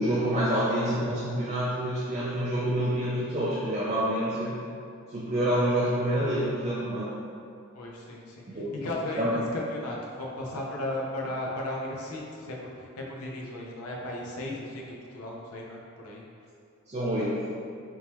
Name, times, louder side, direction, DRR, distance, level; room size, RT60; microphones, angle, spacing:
voice 1, 0.0-4.6 5.1-7.1 8.5-8.7 9.2-9.3 16.9-17.5, equal, 30° right, -8 dB, 0.5 m, -27 dB
voice 2, 7.7-8.4 8.8-16.2, left 1 dB, 85° left, -2 dB, 0.6 m, -35 dB
3.6 x 2.9 x 2.9 m, 2.4 s
head